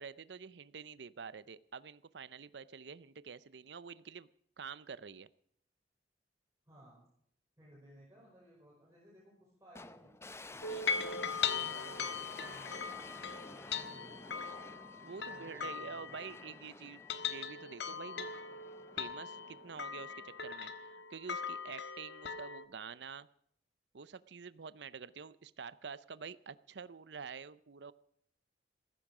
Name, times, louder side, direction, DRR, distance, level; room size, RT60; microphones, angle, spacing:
voice 1, 0.0-4.3 4.6-5.3 10.6-10.8 15.0-18.3 19.0-23.3 23.9-27.9, right 5 dB, 70° right, 17 dB, 0.6 m, -48 dB
voice 2, 6.6-7.1 7.6-10.1 10.5-11.1 11.5-12.8 13.5-14.4 15.1-16.6, equal, 15° right, -5 dB, 5.3 m, -60 dB
sound 1, 9.8-21.0, left 2 dB, 15° left, 0.6 m, -52 dB
sound 2, 10.6-16.6 16.9-22.6, left 6 dB, 75° left, 1.3 m, -40 dB
15.5 x 14.5 x 4.9 m, 0.67 s
head